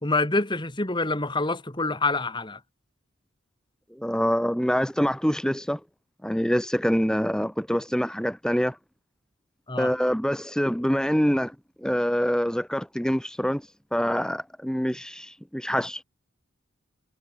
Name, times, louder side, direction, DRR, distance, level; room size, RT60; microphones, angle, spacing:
voice 1, 0.0-2.6 9.7-9.9, left 3 dB, 20° left, 2.0 m, -26 dB
voice 2, 4.0-5.8 6.2-8.8 9.8-11.5 11.8-13.6 13.9-16.0, equal, 5° left, 1.8 m, -25 dB
head